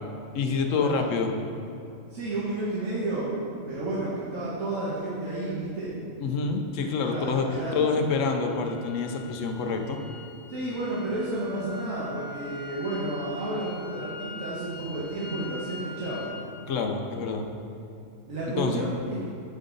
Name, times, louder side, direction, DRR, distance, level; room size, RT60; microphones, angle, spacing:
voice 1, 0.3-1.3 6.2-7.5 7.7-10.0 16.7-17.4 18.6-18.8, left 4 dB, 75° left, 4 dB, 1.1 m, -27 dB
voice 2, 2.1-3.3 3.6-5.9 7.1-8.0 10.5-16.3 18.3-19.2, right 2 dB, 85° right, -8 dB, 1.7 m, -31 dB
sound 1, 6.8-16.4, left 2 dB, 35° left, 0.4 m, -44 dB
12.0 x 5.2 x 3.9 m, 2.6 s
omnidirectional pair, 1.3 m